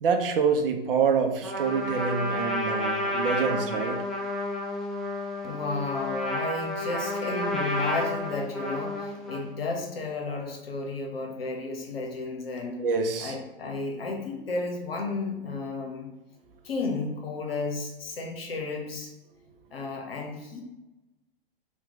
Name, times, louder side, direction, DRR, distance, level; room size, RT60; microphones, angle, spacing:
voice 1, 0.0-4.0 12.8-13.4, right 5 dB, 70° right, 5 dB, 0.6 m, -26 dB
Trumpet, 1.4-9.5, left 1 dB, ahead, 0.5 m, -31 dB
voice 2, 5.4-12.8 13.2-16.1 16.6-19.1 19.7-20.6, left 3 dB, 80° left, 2 dB, 0.8 m, -33 dB
2.9 x 2.3 x 3.6 m, 1.0 s
hypercardioid pair, 105°, 29 cm